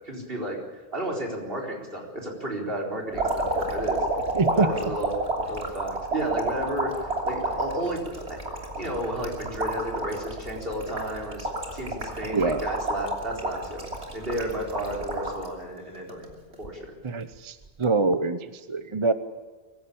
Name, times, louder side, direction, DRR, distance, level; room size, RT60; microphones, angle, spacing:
voice 1, 0.0-4.1 4.6-5.2 5.5-8.4 8.8-13.9 14.1-16.3 16.6-16.9, right 1 dB, 55° right, 0 dB, 4.6 m, -32 dB
sound 1, 3.1-15.5 15.9-16.7 17.7-17.8, right 2 dB, 75° right, 3.5 m, -30 dB
voice 2, 4.3-4.7 12.3-12.6 17.0-19.1, right 3 dB, 30° right, 12 dB, 0.7 m, -25 dB
24.0 x 15.5 x 8.7 m, 1.3 s
omnidirectional pair, 1.1 m